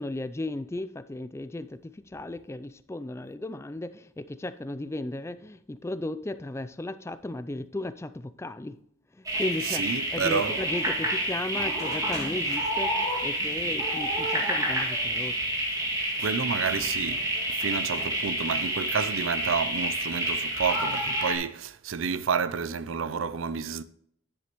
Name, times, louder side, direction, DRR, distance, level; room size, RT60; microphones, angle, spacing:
voice 1, 0.0-8.8 9.4-9.8 10.1-15.3, left 2 dB, 15° left, 0.3 m, -35 dB
sound 1, 9.2-21.3, right 1 dB, 20° right, 2.0 m, -29 dB
voice 2, 9.6-10.6 16.2-23.8, right 6 dB, 90° right, 0.5 m, -30 dB
9.9 x 7.9 x 3.0 m
head